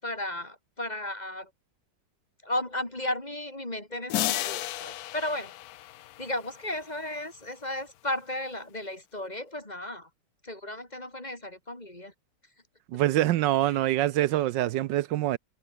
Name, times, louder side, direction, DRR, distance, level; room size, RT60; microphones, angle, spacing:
voice 1, 0.0-1.5 2.4-5.5 6.2-10.1 10.4-12.1 13.6-13.9, left 1 dB, 20° left, 4.0 m, -34 dB
sound 1, 4.1-6.9, left 15 dB, 70° left, 0.9 m, -33 dB
voice 2, 12.9-15.4, right 14 dB, 80° right, 1.3 m, -25 dB
omnidirectional pair, 2.0 m